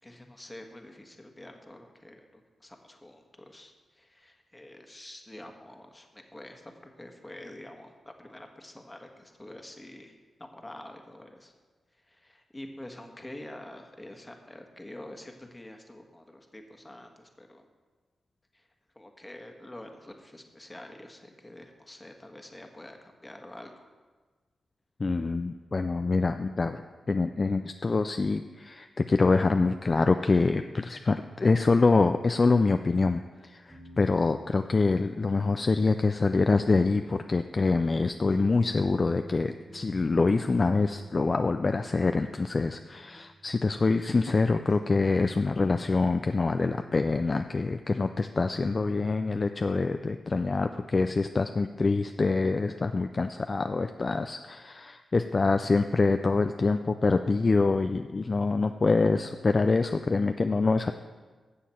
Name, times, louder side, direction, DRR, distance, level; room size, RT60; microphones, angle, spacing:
voice 1, 0.0-11.5 11.9-17.6 18.5-18.7 18.9-23.9, left 1 dB, 20° left, 4 dB, 1.4 m, -47 dB
voice 2, 25.0-26.8 27.1-60.9, left 3 dB, 40° left, 7 dB, 0.4 m, -25 dB
sound 1, 33.7-46.2, right 1 dB, 30° right, 2.4 m, -50 dB
13.5 x 7.3 x 4.4 m, 1.4 s
cardioid pair, 65°, 0 cm